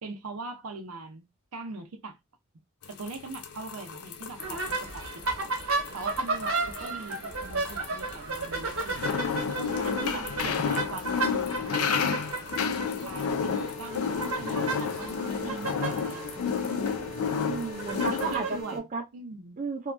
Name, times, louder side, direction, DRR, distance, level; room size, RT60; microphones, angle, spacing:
voice 1, 0.0-2.2 3.0-4.7 4.9-5.4 5.9-9.2 9.6-12.3 13.0-15.1 15.4-16.8 18.1-18.8 19.1-19.6, right 3 dB, 85° right, 0.6 m, -41 dB
sound 1, 2.8-18.4, left 6 dB, 85° left, 0.4 m, -31 dB
sound 2, 4.4-18.6, right 3 dB, 65° right, 1.0 m, -34 dB
voice 2, 10.1-10.4 17.5-19.0 19.6-19.9, right 4 dB, 35° right, 0.4 m, -34 dB
sound 3, 13.2-18.8, equal, 30° left, 0.9 m, -42 dB
2.8 x 2.2 x 2.5 m
head